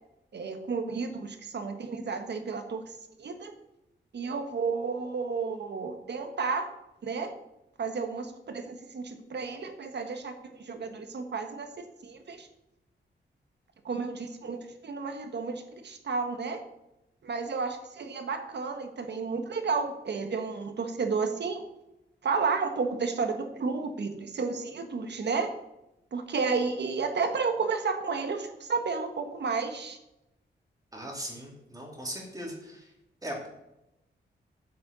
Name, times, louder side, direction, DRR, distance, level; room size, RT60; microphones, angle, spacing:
voice 1, 0.3-3.5 4.1-6.7 7.0-7.3 7.8-11.7 12.0-12.5 13.8-14.6 14.8-16.6 17.2-21.6 22.2-25.5 26.1-30.0, right 4 dB, 60° right, 6 dB, 1.5 m, -32 dB
voice 2, 30.9-32.9 33.2-33.5, equal, 20° right, -1 dB, 2.8 m, -39 dB
9.6 x 7.6 x 6.9 m, 0.91 s
wide cardioid pair, 160°, 20 cm